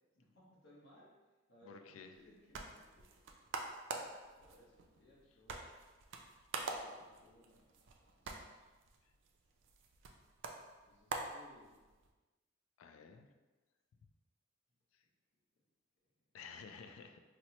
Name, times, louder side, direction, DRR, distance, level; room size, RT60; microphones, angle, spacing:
voice 1, 0.1-1.1 1.5-3.5 4.4-5.6 6.7-7.7 8.0-8.4 10.8-11.8 16.0-16.1, left 1 dB, 60° left, -5 dB, 0.9 m, -64 dB
voice 2, 1.6-2.1 9.0-9.1 12.8-13.3 14.9-15.1 16.3-17.2, left 6 dB, 80° left, 6 dB, 0.3 m, -53 dB
sound 1, 2.1-12.1, right 3 dB, 65° right, 0.4 m, -47 dB
4.2 x 2.1 x 2.9 m, 1.2 s
head